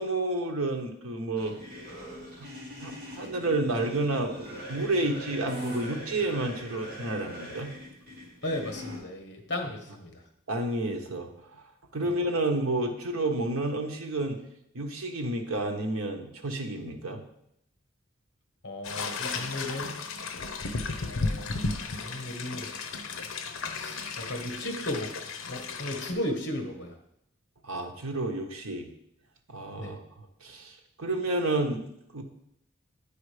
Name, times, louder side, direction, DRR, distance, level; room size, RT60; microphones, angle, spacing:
voice 1, 0.0-1.6 2.4-2.5 2.8-7.7 10.5-11.6 11.9-14.4 14.7-17.2 27.6-28.9 29.5-30.0 30.4-31.8 32.1-32.2, right 2 dB, 85° right, 3 dB, 1.1 m, -30 dB
sound 1, 1.4-9.0, equal, 45° right, 2.9 m, -41 dB
voice 2, 8.4-10.2 12.0-12.1 18.6-20.0 21.0-22.7 23.7-25.1 25.5-27.0 29.8-30.0, left 1 dB, 55° left, 4 dB, 1.3 m, -35 dB
sound 2, 18.8-26.1, left 3 dB, 75° left, 0.8 m, -34 dB
8.7 x 5.0 x 4.9 m, 0.75 s
head